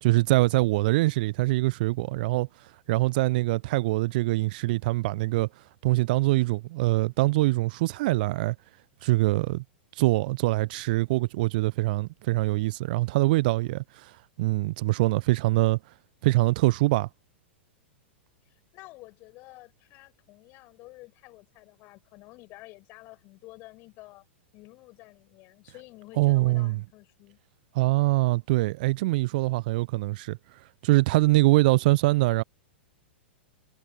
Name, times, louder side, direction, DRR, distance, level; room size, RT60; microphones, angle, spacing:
voice 1, 0.0-2.5 2.9-5.5 5.8-8.5 9.0-9.6 10.0-14.1 14.4-15.8 16.2-17.1 26.2-26.8 27.7-30.4 30.8-32.4, right 20 dB, 50° right, 0.7 m, -23 dB
voice 2, 0.7-1.1 18.5-24.3 24.5-27.4, left 21 dB, 40° left, 7.1 m, -50 dB
figure-of-eight pair, 100°, 6 cm